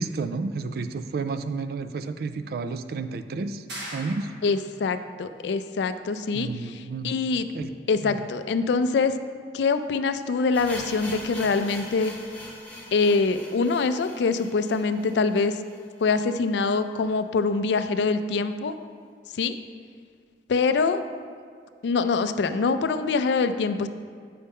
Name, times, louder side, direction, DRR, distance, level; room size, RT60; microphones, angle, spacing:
voice 1, 0.0-3.6 3.9-4.3 6.3-7.1 7.5-7.7 8.0-8.2, right 4 dB, 55° right, 10 dB, 0.3 m, -31 dB
sound 1, 3.7-4.8, right 1 dB, 80° right, 1.6 m, -39 dB
voice 2, 4.4-7.5 7.9-9.1 9.5-12.1 12.9-15.6 16.0-18.7 19.3-19.5 20.5-21.0 21.8-23.9, left 4 dB, 70° left, 10 dB, 0.4 m, -24 dB
sound 2, 10.5-16.5 16.7-16.8 17.1-17.2 17.7-17.8, left 1 dB, 10° left, 0.7 m, -42 dB
8.4 x 5.5 x 3.5 m, 2.1 s
head